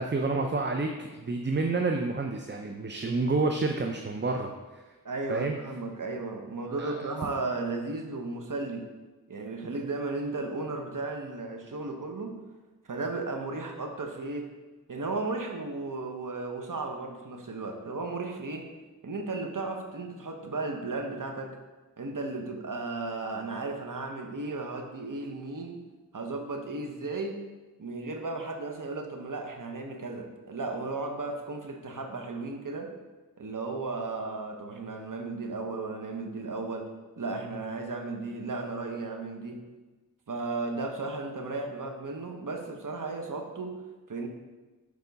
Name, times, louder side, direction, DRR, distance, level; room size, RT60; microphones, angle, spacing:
voice 1, 0.0-4.8 5.3-5.6 6.8-7.1, right 3 dB, 30° right, 4 dB, 0.5 m, -29 dB
voice 2, 5.0-8.8 9.3-12.3 12.9-14.5 14.9-18.7 19.0-21.5 22.0-25.8 26.1-27.4 27.8-32.9 33.4-36.9 37.2-39.6 40.3-43.8 44.1-44.3, right 3 dB, 60° right, 2 dB, 1.0 m, -35 dB
6.7 x 4.8 x 4.0 m, 1.2 s
wide cardioid pair, 45°, 35 cm